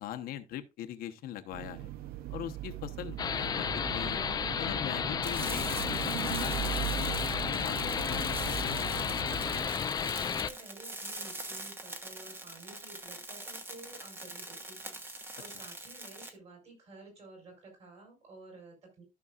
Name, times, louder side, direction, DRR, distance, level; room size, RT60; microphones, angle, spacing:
voice 1, 0.0-1.9 2.3-4.2 4.6-7.2 7.5-8.9, left 11 dB, 75° left, 1.0 m, -41 dB
sound 1, 1.5-9.7, right 13 dB, 75° right, 0.7 m, -39 dB
sound 2, 3.2-10.5, left 7 dB, 25° left, 0.4 m, -32 dB
sound 3, 5.2-16.3, right 2 dB, 15° right, 1.1 m, -43 dB
voice 2, 9.8-19.0, right 2 dB, 40° right, 4.6 m, -53 dB
13.5 x 6.1 x 2.4 m
cardioid pair, 170°, 16 cm